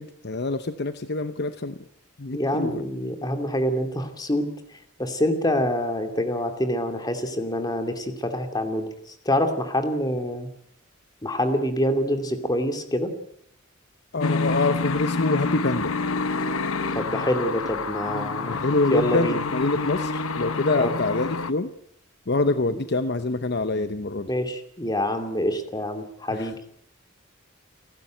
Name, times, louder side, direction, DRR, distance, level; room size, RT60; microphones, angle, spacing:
voice 1, 0.0-1.8 2.2-2.7 14.1-15.9 18.5-21.7 22.3-24.3 26.3-26.5, left 2 dB, 50° left, 10 dB, 0.9 m, -25 dB
voice 2, 2.3-4.5 5.0-8.9 9.2-10.5 11.2-13.1 16.9-19.4 20.8-21.0 22.6-22.8 24.3-26.6, left 1 dB, 20° left, 7 dB, 2.6 m, -26 dB
sound 1, 14.2-21.5, left 3 dB, 85° left, 1.1 m, -28 dB
30.0 x 12.0 x 9.1 m, 0.73 s
head